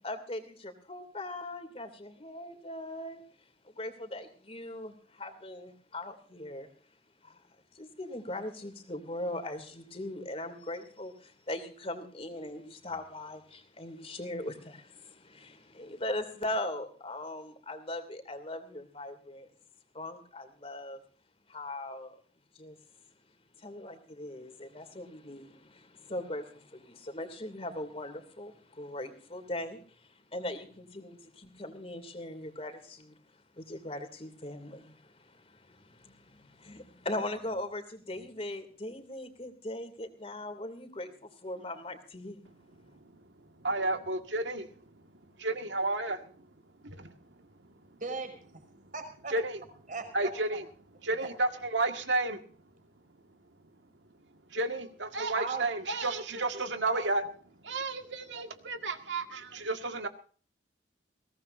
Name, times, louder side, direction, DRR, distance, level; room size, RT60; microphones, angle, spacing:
voice 1, 0.0-3.2 3.6-6.7 7.2-7.4 7.7-19.5 19.9-21.0 21.5-22.2 22.5-22.8 23.6-42.4, left 1 dB, 35° left, 2.8 m, -40 dB
voice 2, 42.5-48.0 48.7-48.9 49.3-49.6 50.1-50.6 51.0-52.7 53.3-53.4 54.0-57.2 57.5-60.1, right 2 dB, 85° right, 1.9 m, -33 dB
voice 3, 48.0-48.4 48.9-49.3 49.9-50.1 50.5-50.6 51.2-51.3 55.3-55.7 56.8-57.1, right 4 dB, 45° right, 5.1 m, -37 dB
21.5 x 18.0 x 2.7 m
head